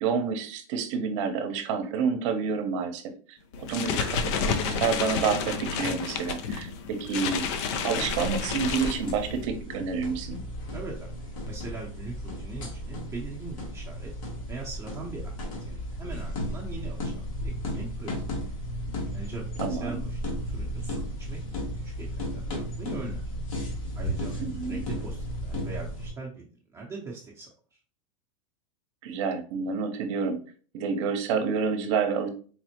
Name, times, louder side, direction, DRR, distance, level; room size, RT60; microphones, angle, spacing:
voice 1, 0.0-10.4 19.6-20.0 24.4-24.8 29.0-30.4 30.7-32.3, right 5 dB, 60° right, 7 dB, 0.8 m, -29 dB
sound 1, 3.5-9.5, left 6 dB, 60° left, 0.5 m, -30 dB
sound 2, 7.9-26.1, equal, 75° left, 1.3 m, -34 dB
voice 2, 10.7-11.1 11.5-14.1 14.5-18.3 19.1-21.4 21.7-23.3 23.9-24.3 24.7-27.8, right 3 dB, 15° right, -3 dB, 0.7 m, -41 dB
4.3 x 2.0 x 2.9 m, 0.41 s
hypercardioid pair, 120°, 17 cm